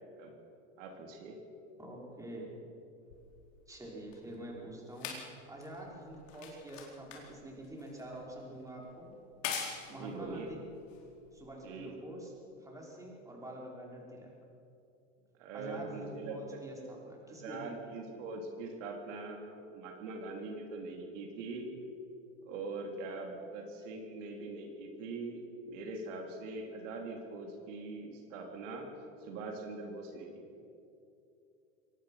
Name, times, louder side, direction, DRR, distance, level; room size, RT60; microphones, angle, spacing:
voice 1, 0.8-1.4 9.9-10.5 11.6-11.9 15.4-16.6 17.3-21.7 22.4-28.9 29.2-30.4, right 3 dB, 75° right, 2 dB, 3.5 m, -42 dB
voice 2, 1.8-2.5 3.7-5.1 5.5-9.1 9.9-10.6 11.3-14.3 15.5-18.0, right 1 dB, 10° right, -3 dB, 5.4 m, -46 dB
sound 1, 3.1-11.7 12.6-12.7, left 6 dB, 80° left, 4.3 m, -45 dB
23.5 x 19.0 x 5.8 m, 2.7 s
supercardioid pair, 120°, 38 cm